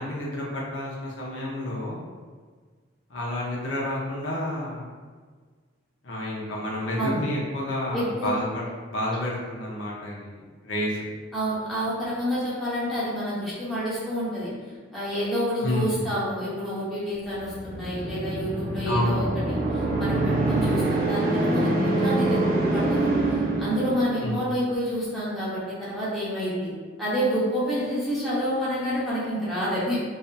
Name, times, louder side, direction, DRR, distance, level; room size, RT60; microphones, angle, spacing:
voice 1, 0.0-2.0 3.1-4.9 6.0-8.6 8.9-11.0 15.6-16.1 18.9-19.3 24.2-24.4, left 1 dB, 65° left, -4 dB, 0.6 m, -29 dB
voice 2, 7.9-8.3 11.3-14.5 14.9-22.4 22.7-26.7 27.0-30.0, equal, ahead, -10 dB, 0.7 m, -28 dB
sound 1, 17.4-24.4, right 2 dB, 45° right, 0.5 m, -25 dB
2.7 x 2.4 x 2.2 m, 1.5 s
head